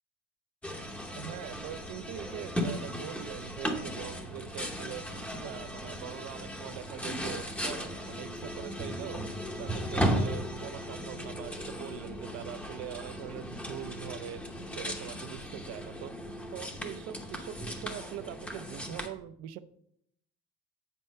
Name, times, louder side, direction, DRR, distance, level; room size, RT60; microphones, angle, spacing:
sound 1, 0.6-19.1, equal, 5° left, 0.7 m, -36 dB
voice 1, 1.2-5.1 5.3-9.2 9.6-14.4 14.8-16.1 16.5-19.6, right 11 dB, 55° right, 13 dB, 0.6 m, -42 dB
8.3 x 4.3 x 5.4 m, 0.71 s
cardioid pair, 160°, 32 cm